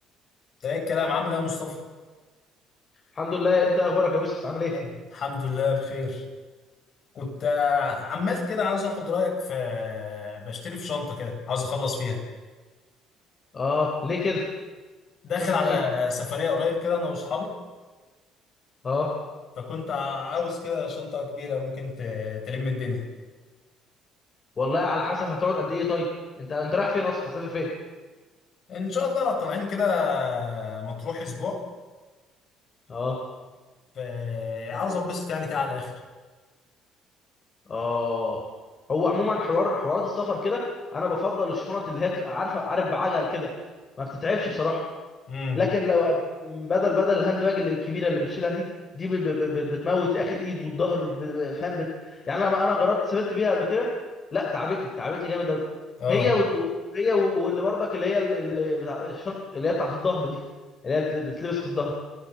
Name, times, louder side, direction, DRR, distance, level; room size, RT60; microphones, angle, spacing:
voice 1, 0.6-1.8 4.7-6.2 7.1-12.2 15.2-17.5 19.6-23.1 28.7-31.6 33.9-35.9 45.3-45.6 56.0-56.3, left 5 dB, 50° left, 1 dB, 7.5 m, -28 dB
voice 2, 3.1-4.7 13.5-14.4 15.4-15.8 18.8-19.1 24.6-26.1 26.4-27.7 32.9-33.2 34.7-34.8 37.7-38.4 38.9-40.6 40.9-43.5 44.0-44.8 45.5-48.7 48.9-53.9 54.3-55.6 56.1-56.7 56.9-60.4 60.8-61.9, left 3 dB, 35° left, -1 dB, 4.7 m, -26 dB
29.0 x 17.0 x 7.5 m, 1.3 s
cardioid pair, 120°, 0 cm